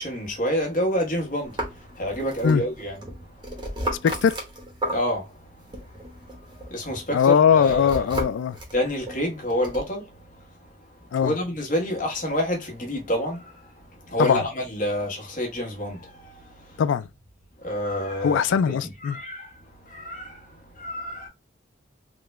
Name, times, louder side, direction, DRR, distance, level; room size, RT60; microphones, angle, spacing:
voice 1, 0.0-3.0 4.9-5.4 6.3-8.0 8.7-10.1 10.4-10.5 11.2-13.7 14.0-16.8 17.6-18.4 18.7-18.8 19.1-19.5 19.8-21.3, equal, 40° left, 1.1 m, -28 dB
sound 1, 1.4-5.4 5.7-9.8, equal, 25° right, 0.9 m, -35 dB
voice 2, 4.0-4.3 7.1-8.6 11.1-11.3 14.2-14.4 16.8-17.1 18.2-19.2, left 7 dB, 75° left, 0.3 m, -20 dB
3.7 x 2.2 x 3.1 m
head